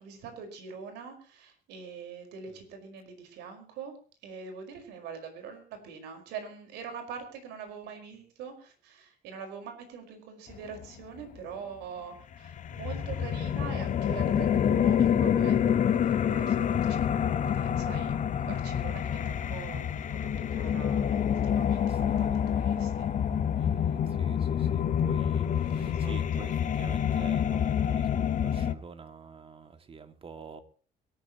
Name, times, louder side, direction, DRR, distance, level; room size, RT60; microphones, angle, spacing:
voice 1, 0.0-3.9 4.2-23.1 25.7-26.5, right 6 dB, 90° right, 5.0 m, -44 dB
sound 1, 12.4-28.7, left 9 dB, 50° left, 1.5 m, -27 dB
voice 2, 21.8-22.4 23.5-30.6, right 5 dB, 35° right, 2.3 m, -47 dB
23.5 x 13.5 x 3.1 m
cardioid pair, 110°, 17 cm